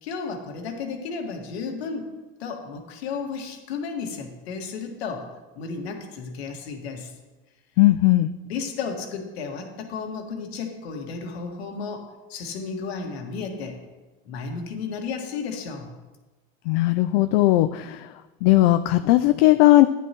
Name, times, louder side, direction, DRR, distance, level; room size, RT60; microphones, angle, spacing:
voice 1, 0.0-2.1 2.4-5.3 5.6-7.1 8.4-13.8 14.3-15.9, left 5 dB, 90° left, 2 dB, 1.9 m, -33 dB
voice 2, 7.8-8.3 16.7-18.1 18.4-19.9, left 17 dB, 70° left, 9 dB, 0.5 m, -17 dB
13.0 x 10.0 x 3.0 m, 1.2 s
supercardioid pair, 105°, 31 cm